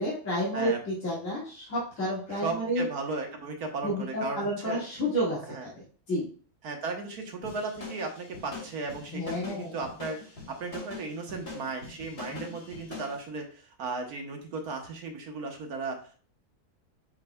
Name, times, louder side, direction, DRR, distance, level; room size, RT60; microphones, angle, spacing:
voice 1, 0.0-2.8 3.8-5.7 6.1-6.2 9.1-9.7 12.3-12.5, equal, 55° left, -9 dB, 2.6 m, -30 dB
voice 2, 2.3-4.8 5.5-5.7 6.6-16.1, right 3 dB, 75° right, 3 dB, 1.6 m, -36 dB
sound 1, 7.4-13.2, left 3 dB, 85° left, 3.5 m, -42 dB
9.7 x 4.7 x 2.3 m, 0.42 s
omnidirectional pair, 1.6 m